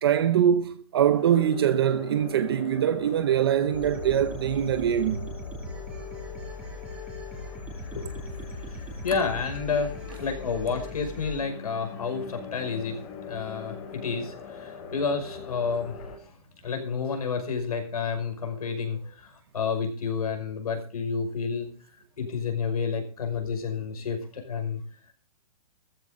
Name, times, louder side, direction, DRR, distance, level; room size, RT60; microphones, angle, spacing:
voice 1, 0.0-5.3, right 9 dB, 40° right, 0.8 m, -23 dB
sound 1, 1.1-16.2, left 5 dB, 25° left, 3.0 m, -42 dB
sound 2, 3.7-11.4, left 2 dB, 5° right, 2.9 m, -39 dB
voice 2, 7.7-8.3 8.5-16.3 16.6-21.7 22.2-24.8, left 5 dB, 85° left, 5.6 m, -30 dB
15.5 x 14.5 x 3.9 m
hypercardioid pair, 175°, 19 cm